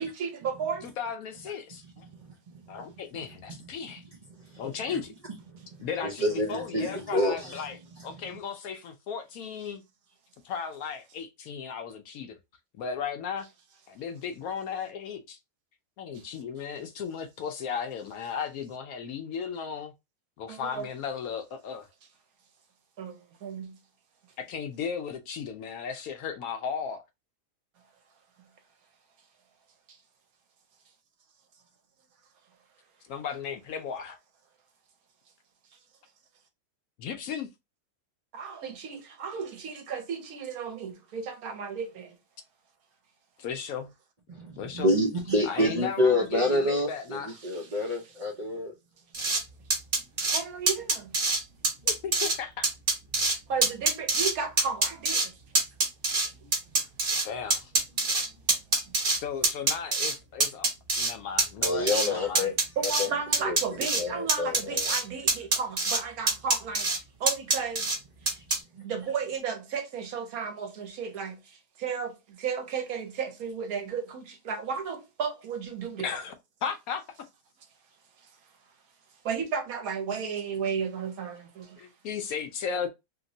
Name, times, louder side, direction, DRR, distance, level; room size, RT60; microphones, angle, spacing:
voice 1, 0.0-0.9 20.5-20.9 23.0-23.8 29.9-30.0 38.3-42.2 46.1-46.2 47.4-48.0 50.3-51.2 53.5-55.3 59.1-59.2 62.8-66.9 67.2-67.9 68.8-76.1 79.2-81.8, right 6 dB, 70° right, 1.1 m, -34 dB
voice 2, 1.0-2.1 2.7-4.0 4.6-5.1 5.8-7.8 8.0-9.8 10.4-12.4 12.7-13.5 13.9-15.4 16.0-19.9 20.4-21.9 24.4-27.0 33.1-34.2 37.0-37.5 43.4-43.9 44.6-44.9 45.5-47.3 51.8-52.7 57.2-57.7 59.1-60.7 60.9-62.5 68.5-68.6 76.0-76.3 76.6-77.3 81.8-82.9, left 6 dB, 70° left, 0.9 m, -35 dB
voice 3, 5.5-7.7 44.3-48.7 61.6-62.5 62.8-63.1 63.4-64.9 68.7-68.9, left 1 dB, 85° right, 0.3 m, -28 dB
sound 1, 49.1-49.4 49.7-50.4 50.7-51.4 51.6-52.4 52.6-53.4 53.6-54.3 54.6-55.3 55.5-57.3 57.5-59.2 59.4-60.1 60.4-61.1 61.4-62.1 62.4-63.1 63.3-64.0 64.3-65.0 65.3-66.0 66.3-67.0 67.3-68.0 68.3-68.6, right 3 dB, 40° right, 1.0 m, -24 dB
3.0 x 2.8 x 2.6 m
omnidirectional pair, 1.7 m